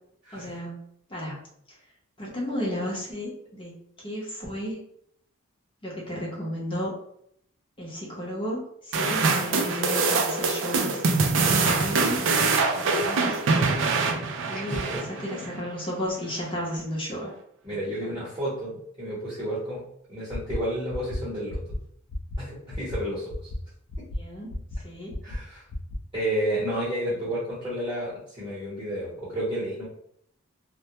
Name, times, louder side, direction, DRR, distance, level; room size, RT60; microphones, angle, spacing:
voice 1, 0.3-0.8 1.1-1.4 2.2-4.8 5.8-6.9 7.8-12.3 12.8-13.5 14.5-17.3 18.0-18.2 24.1-25.2 27.1-27.2, equal, 25° left, -4 dB, 0.7 m, -34 dB
sound 1, 8.9-15.5, right 4 dB, 55° right, 0.3 m, -24 dB
voice 2, 14.5-15.4 17.6-19.8 20.1-21.6 22.4-23.3 24.0-24.1 25.2-25.6 26.1-29.8, right 1 dB, 20° right, -11 dB, 0.9 m, -31 dB
sound 2, 20.3-20.6 20.9-21.2 21.5-21.8 22.1-22.4 22.7-23.0 23.3-23.6 23.9-24.2 24.5-24.8 25.1-25.4 25.7-26.0, left 1 dB, 65° left, 0.5 m, -31 dB
2.1 x 2.1 x 2.8 m, 0.69 s
head